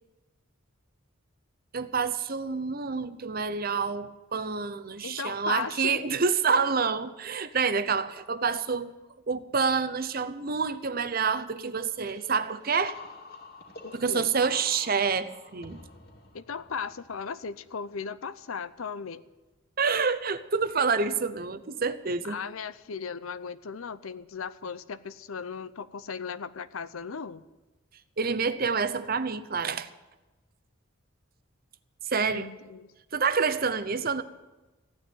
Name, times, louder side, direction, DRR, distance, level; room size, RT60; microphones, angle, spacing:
voice 1, 1.7-8.9 9.3-13.0 13.9-15.8 19.8-22.4 28.2-29.9 32.1-32.5 33.1-34.2, right 5 dB, 45° right, 0.8 m, -28 dB
voice 2, 5.0-6.0 13.8-14.3 16.3-19.2 22.2-27.4 32.2-32.9, left 6 dB, 90° left, 0.6 m, -37 dB
sound 1, 12.1-17.6, left 3 dB, 50° left, 2.7 m, -48 dB
16.0 x 9.4 x 9.4 m
head